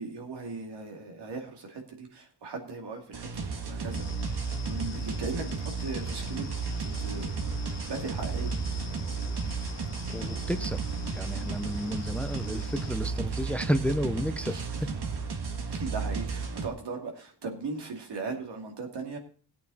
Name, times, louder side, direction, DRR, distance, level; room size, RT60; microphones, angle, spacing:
voice 1, 0.0-6.5 6.8-7.5 7.8-8.5 14.5-14.7 15.7-19.2, right 4 dB, 90° right, 2 dB, 2.7 m, -38 dB
sound 1, 3.1-16.7, right 4 dB, 70° right, 1.8 m, -33 dB
sound 2, 3.9-12.9, left 9 dB, 40° left, 0.5 m, -44 dB
sound 3, 6.0-15.3, right 7 dB, 45° right, 0.7 m, -44 dB
voice 2, 10.1-10.8 11.1-14.9, equal, 5° left, 10 dB, 0.7 m, -31 dB
17.0 x 8.6 x 4.2 m, 0.42 s
wide cardioid pair, 125°, 40 cm